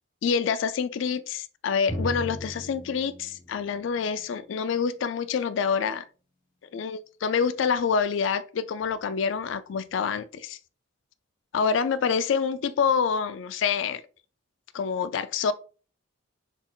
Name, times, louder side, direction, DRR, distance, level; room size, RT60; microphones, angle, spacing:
voice 1, 0.2-6.0 6.7-10.6 11.5-14.0 14.7-15.5, left 6 dB, 65° left, 0.3 m, -27 dB
Drum, 1.9-5.4, equal, 20° left, 1.5 m, -37 dB
4.1 x 3.7 x 2.4 m
head